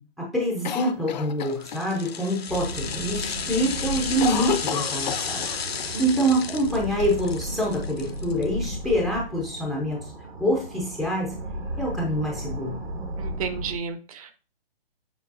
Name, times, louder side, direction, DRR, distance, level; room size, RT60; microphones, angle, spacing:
voice 1, 0.0-5.4 6.0-11.4 11.8-12.8, equal, ahead, -3 dB, 0.5 m, -26 dB
Cough, 0.6-2.1 2.5-2.6 2.9-3.3 3.6-5.9 6.2-6.3 7.0-7.8, left 9 dB, 50° left, 0.6 m, -31 dB
sound 1, 1.5-8.8 9.1-9.2, left 6 dB, 90° left, 0.8 m, -33 dB
sound 2, 2.5-13.8, right 1 dB, 80° right, 2.4 m, -35 dB
voice 2, 13.2-14.3, right 6 dB, 35° right, 9 dB, 0.8 m, -32 dB
7.2 x 5.3 x 2.6 m, 0.35 s
hypercardioid pair, 140°, 30 cm